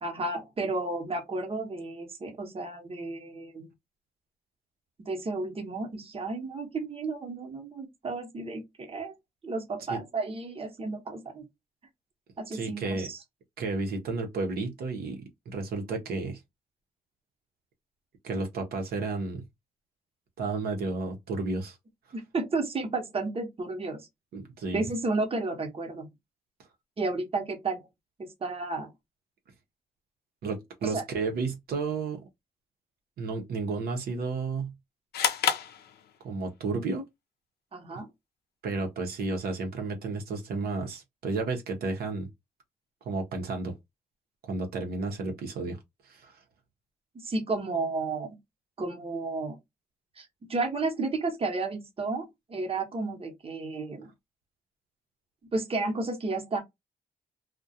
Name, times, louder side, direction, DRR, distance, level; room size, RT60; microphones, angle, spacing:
voice 1, 0.0-3.7 5.1-9.2 9.4-11.4 12.4-13.2 22.1-24.1 24.7-26.1 27.0-27.9 28.2-28.9 30.8-31.0 37.7-38.1 47.1-48.4 48.8-49.6 50.2-54.1 55.5-56.6, right 3 dB, 35° right, 0.8 m, -32 dB
voice 2, 12.5-13.1 13.6-16.4 18.2-19.5 20.4-21.8 24.3-24.8 30.4-32.3 33.2-34.7 36.2-37.0 37.9-38.0 38.6-42.3 43.0-43.7 44.4-45.8 46.0-46.3, right 3 dB, 75° right, 0.7 m, -32 dB
sound 1, 35.1-36.6, left 9 dB, 80° left, 0.5 m, -29 dB
2.3 x 2.1 x 2.6 m
cardioid pair, 65°, 16 cm